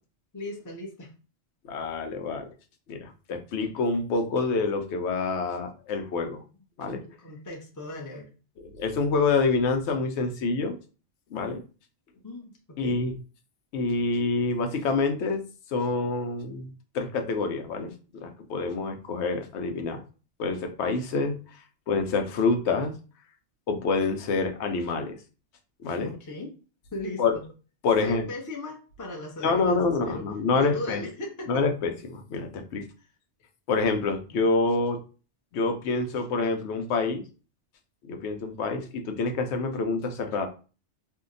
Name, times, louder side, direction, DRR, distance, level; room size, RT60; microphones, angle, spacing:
voice 1, 0.3-1.1 6.9-8.3 12.2-13.0 26.0-26.5 26.9-27.4 28.0-30.3 30.5-31.6 33.0-33.1, left 2 dB, 20° left, 0 dB, 0.6 m, -38 dB
voice 2, 1.7-2.5 2.9-6.4 6.8-7.0 8.6-10.7 11.3-11.6 12.8-13.1 13.7-15.4 15.7-17.9 18.2-20.0 20.4-21.4 21.9-22.9 23.7-25.2 25.8-26.1 27.2-27.4 27.8-28.3 29.4-31.0 31.5-32.8 33.7-35.0 35.5-37.2 38.1-40.5, left 4 dB, 75° left, 5 dB, 0.9 m, -27 dB
2.7 x 2.1 x 3.8 m, 0.35 s
omnidirectional pair, 1.2 m